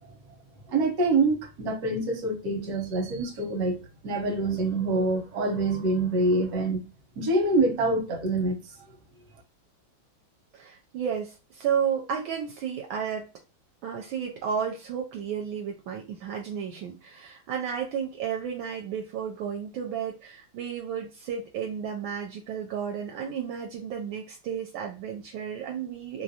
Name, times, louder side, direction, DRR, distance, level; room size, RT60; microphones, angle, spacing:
voice 1, 0.7-6.8 7.2-8.6, right 2 dB, 60° right, 1.2 m, -25 dB
voice 2, 10.5-13.3 13.8-26.2, right 7 dB, 75° right, 1.3 m, -32 dB
3.2 x 2.4 x 2.7 m
omnidirectional pair, 2.3 m